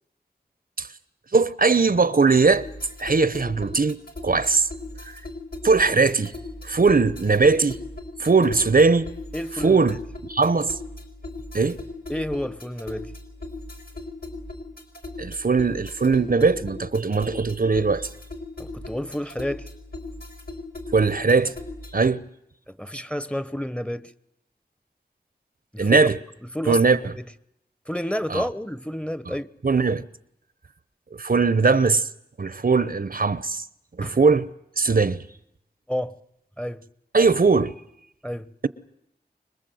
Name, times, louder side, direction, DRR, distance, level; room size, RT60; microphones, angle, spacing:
voice 1, 1.3-2.7 3.0-4.7 5.0-5.2 5.6-6.3 6.6-7.8 8.2-9.1 9.6-10.0 10.3-10.8 11.5-11.8 15.2-18.1 20.9-21.5 21.9-22.2 25.8-26.2 26.7-27.0 28.3-28.4 29.6-30.1 31.2-32.1 32.4-33.7 34.0-34.5 34.8-35.2 37.1-37.7, right 4 dB, 55° right, 0.8 m, -20 dB
sound 1, 2.5-22.1, left 2 dB, 65° left, 4.3 m, -38 dB
voice 2, 9.3-9.9 12.1-13.1 18.6-19.7 22.7-24.1 25.7-26.0 26.5-27.2 27.9-29.5 34.0-34.2 35.9-36.2 36.6-36.8 38.2-38.5, equal, 5° left, 0.9 m, -30 dB
25.0 x 21.0 x 7.8 m
wide cardioid pair, 50°, 17 cm